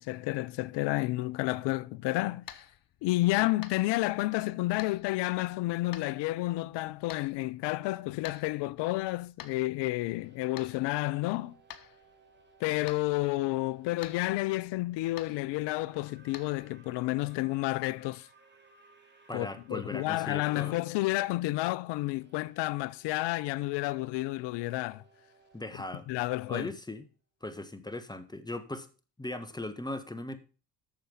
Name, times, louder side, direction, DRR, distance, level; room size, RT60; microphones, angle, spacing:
voice 1, 0.0-2.4 3.0-11.6 12.6-18.3 19.3-25.0 26.1-26.7, left 19 dB, 60° left, 0.6 m, -30 dB
sound 1, 2.4-16.7, left 10 dB, 45° left, 1.0 m, -52 dB
sound 2, 10.1-14.0 15.7-19.8 22.1-27.0, right 4 dB, 20° right, 2.8 m, -62 dB
voice 2, 19.3-20.8 25.5-26.1 26.5-27.0 27.4-28.9 29.2-30.4, left 2 dB, 10° left, 1.6 m, -38 dB
9.0 x 6.8 x 5.6 m
hypercardioid pair, 60°, 48 cm